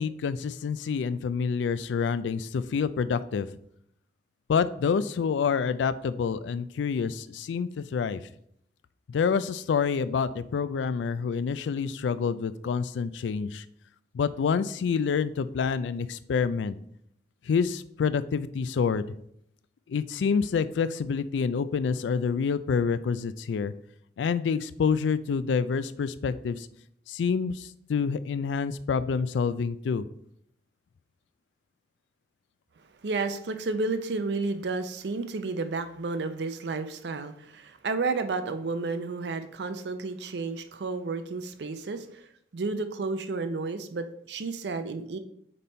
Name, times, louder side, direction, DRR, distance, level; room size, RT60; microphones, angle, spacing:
voice 1, 0.0-3.5 4.5-8.2 9.1-13.6 14.1-16.7 17.5-19.1 19.9-23.7 24.2-26.7 27.1-30.0, left 6 dB, 85° left, 14 dB, 0.3 m, -27 dB
voice 2, 33.0-42.3 42.5-45.2, right 3 dB, 70° right, 10 dB, 0.5 m, -31 dB
5.3 x 4.1 x 4.2 m, 0.72 s
head